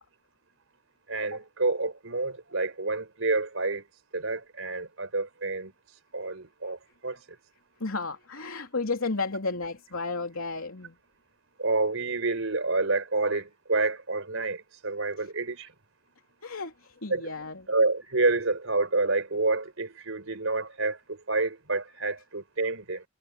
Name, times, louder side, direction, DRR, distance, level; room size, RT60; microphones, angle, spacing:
voice 1, 1.1-3.8 4.1-5.7 6.1-7.2 11.6-15.7 17.1-17.3 17.7-23.0, right 3 dB, 70° right, 4.7 m, -28 dB
voice 2, 7.8-10.9 15.2-15.3 16.4-17.7, left 3 dB, 85° left, 3.1 m, -33 dB
head